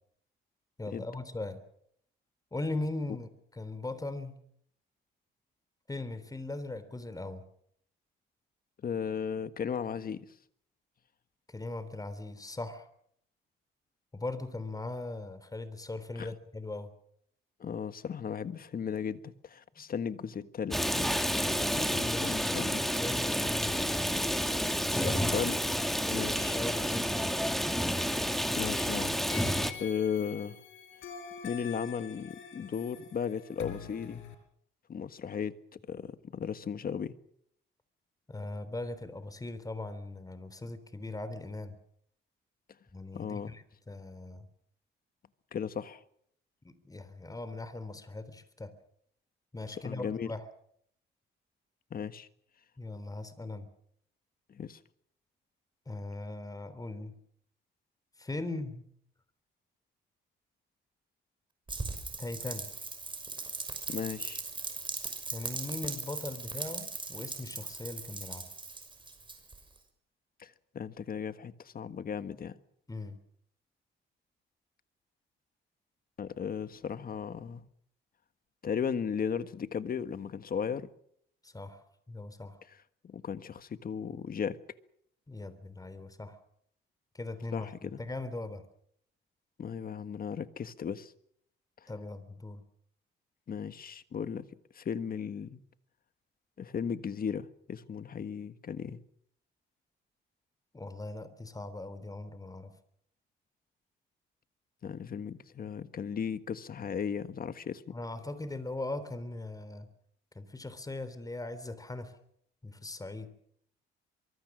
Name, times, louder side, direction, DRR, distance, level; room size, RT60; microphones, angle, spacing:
voice 1, 0.8-1.6 2.5-4.4 5.9-7.4 11.5-12.9 14.1-16.9 21.9-24.0 24.9-25.2 26.4-27.4 38.3-41.7 42.9-44.5 46.6-48.7 49.5-50.4 52.8-53.7 55.9-57.1 58.2-58.9 62.2-62.7 65.3-68.5 72.9-73.2 81.4-81.8 82.1-82.6 85.3-86.4 87.1-88.6 91.9-92.6 100.7-102.7 107.9-109.9 110.4-112.1 112.6-113.3, left 2 dB, 20° left, 3.6 m, -39 dB
voice 2, 8.8-10.3 16.1-16.3 17.6-21.2 21.7-22.8 24.9-25.6 26.1-26.6 28.6-29.5 29.8-30.6 31.4-34.2 34.9-37.1 43.1-43.5 45.5-46.0 49.8-50.3 51.9-52.3 54.5-54.8 63.9-64.4 70.4-72.6 76.2-77.7 78.6-80.9 83.0-84.6 87.5-88.0 89.6-91.1 91.8-91.9 93.5-94.5 94.7-95.6 96.6-99.0 104.8-108.0, left 7 dB, 45° left, 1.5 m, -36 dB
Rain, 20.7-29.7, equal, ahead, 2.6 m, -30 dB
sound 1, 29.3-34.4, left 7 dB, 80° left, 5.1 m, -46 dB
Rain 2, 61.7-69.8, right 3 dB, 25° right, 6.2 m, -39 dB
24.5 x 23.5 x 6.3 m
cardioid pair, 90°, 20 cm